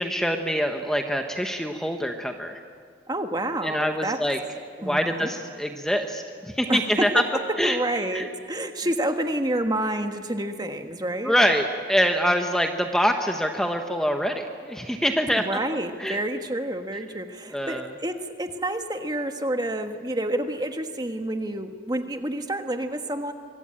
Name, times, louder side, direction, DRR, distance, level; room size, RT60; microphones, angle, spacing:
voice 1, 0.0-2.6 3.6-4.4 4.8-7.2 7.6-7.8 8.1-8.3 11.2-15.4 16.0-16.2 17.5-17.9, equal, 5° left, 4 dB, 1.0 m, -25 dB
voice 2, 3.1-4.2 4.8-5.3 6.7-11.4 15.4-23.3, right 1 dB, 20° right, 6 dB, 1.4 m, -29 dB
24.5 x 23.5 x 8.8 m, 2.1 s
head